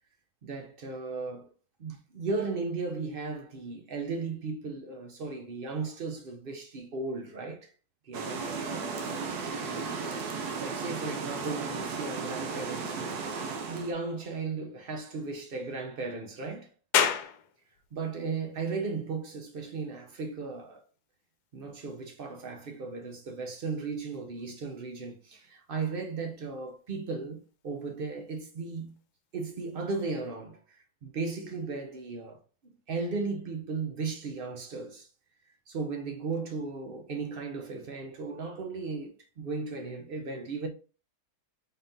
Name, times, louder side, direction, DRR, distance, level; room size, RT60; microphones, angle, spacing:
voice 1, 0.4-1.5 1.8-7.7 8.0-8.9 10.6-13.3 13.7-16.7 17.9-20.8 21.5-28.9 29.3-32.4 32.6-35.1 35.7-40.7, right 4 dB, 55° right, 0.6 m, -36 dB
sound 1, 8.1-13.9, right 4 dB, 80° right, 1.2 m, -35 dB
sound 2, 16.9-30.1, left 8 dB, 85° left, 1.1 m, -39 dB
4.0 x 3.5 x 2.6 m
omnidirectional pair, 1.6 m